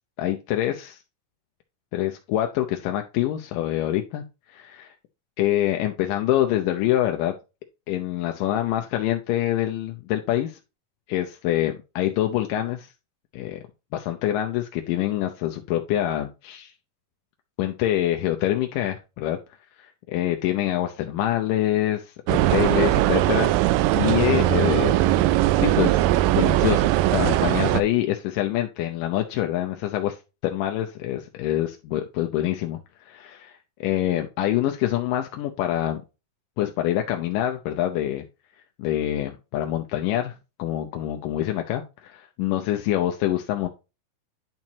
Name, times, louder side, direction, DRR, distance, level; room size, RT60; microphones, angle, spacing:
voice 1, 0.2-1.0 1.9-4.9 5.4-7.3 7.9-10.6 11.1-12.9 13.3-13.6 13.9-16.7 17.6-19.4 19.8-23.5 23.9-25.0 25.6-26.0 26.4-30.2 30.4-33.6 33.8-36.0 36.6-38.2 38.8-43.7, left 13 dB, 75° left, 4 dB, 2.0 m, -25 dB
sound 1, 22.3-27.8, right 15 dB, 85° right, 2.0 m, -20 dB
10.5 x 4.5 x 2.8 m, 0.28 s
omnidirectional pair, 4.4 m